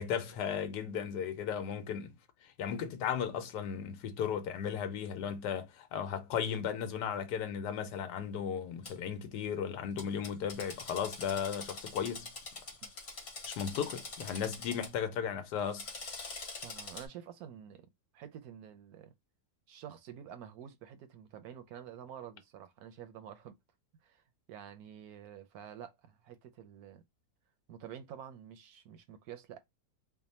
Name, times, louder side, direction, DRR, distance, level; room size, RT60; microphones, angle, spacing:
voice 1, 0.0-12.3 13.4-15.8, left 8 dB, 85° left, 1.3 m, -36 dB
Drill, 8.8-8.9 10.0-14.9 15.6-17.1, left 3 dB, 45° left, 1.3 m, -45 dB
voice 2, 16.6-19.1 19.7-23.6 24.0-24.2 24.5-27.0 27.7-29.6, right 9 dB, 75° right, 1.0 m, -49 dB
3.4 x 2.1 x 4.1 m
omnidirectional pair, 1.7 m